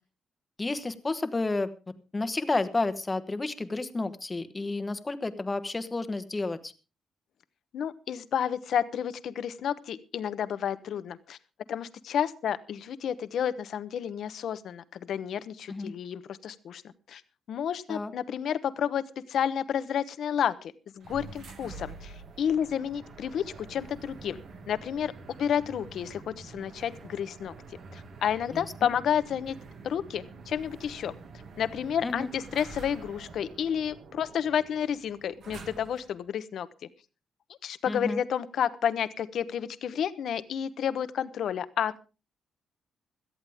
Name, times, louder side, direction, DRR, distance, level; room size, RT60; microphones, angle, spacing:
voice 1, 0.6-1.7 2.1-6.7 15.7-15.9 17.9-18.1 28.5-28.9 32.0-32.3 37.9-38.2, left 3 dB, 15° left, 11 dB, 1.2 m, -31 dB
voice 2, 7.7-11.4 11.7-16.8 17.1-17.2 17.5-24.4 24.7-25.1 25.4-27.5 27.9-29.6 29.8-31.1 31.6-36.7 37.6-42.0, left 8 dB, 60° left, 13 dB, 1.0 m, -31 dB
sound 1, 21.0-36.2, right 4 dB, 55° right, 2.2 m, -47 dB
17.5 x 13.5 x 3.5 m, 0.32 s
cardioid pair, 155°, 0 cm